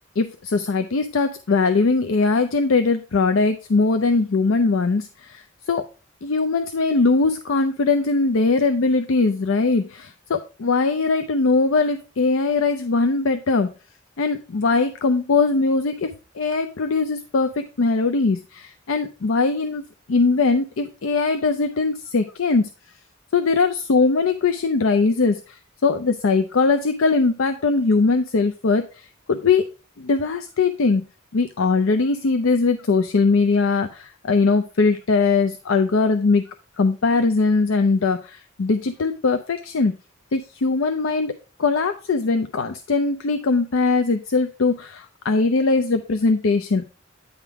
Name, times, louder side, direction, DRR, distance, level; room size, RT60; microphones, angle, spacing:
voice 1, 0.2-5.8 6.2-13.7 14.2-16.1 16.4-22.7 23.3-29.6 30.0-31.1 31.3-40.0 40.3-41.3 41.6-46.9, left 4 dB, 80° left, 7 dB, 0.5 m, -21 dB
9.4 x 3.6 x 4.6 m, 0.33 s
head